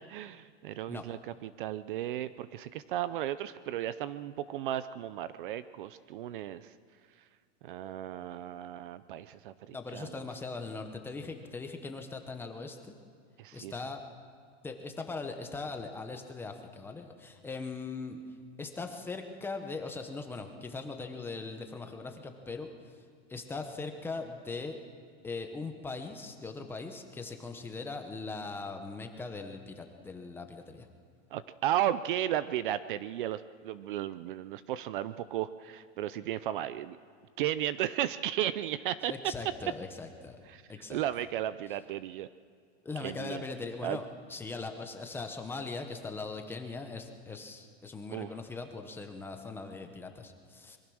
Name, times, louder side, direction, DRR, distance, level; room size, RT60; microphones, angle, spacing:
voice 1, 0.1-6.7 7.6-10.2 13.4-13.7 31.3-37.0 37.4-39.1 40.5-40.6 40.9-42.3 43.0-43.4 43.8-44.0 48.1-48.3, right 12 dB, 45° right, 15 dB, 0.5 m, -34 dB
voice 2, 9.7-12.9 13.5-14.0 14.6-18.2 18.6-23.0 23.3-24.8 25.2-30.9 39.1-40.4 40.7-41.0 42.8-50.8, left 3 dB, 5° left, 5 dB, 0.8 m, -40 dB
25.0 x 22.5 x 6.3 m, 2.1 s
supercardioid pair, 175°, 36 cm